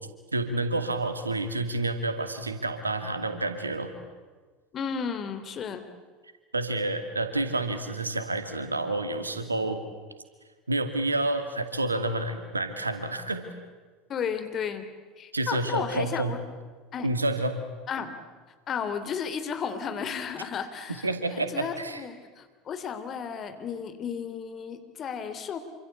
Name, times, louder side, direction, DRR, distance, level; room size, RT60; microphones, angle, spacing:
voice 1, 0.3-3.9 6.5-9.8 10.7-13.5 15.3-16.3 17.0-17.6 21.0-22.0, right 2 dB, 90° right, 8 dB, 2.4 m, -29 dB
voice 2, 4.7-5.8 14.1-14.9 15.2-16.4 16.9-17.1 17.9-18.1 18.7-25.6, left 7 dB, 35° left, 10 dB, 3.2 m, -33 dB
28.0 x 25.5 x 8.3 m, 1.4 s
figure-of-eight pair, 75°, 0 cm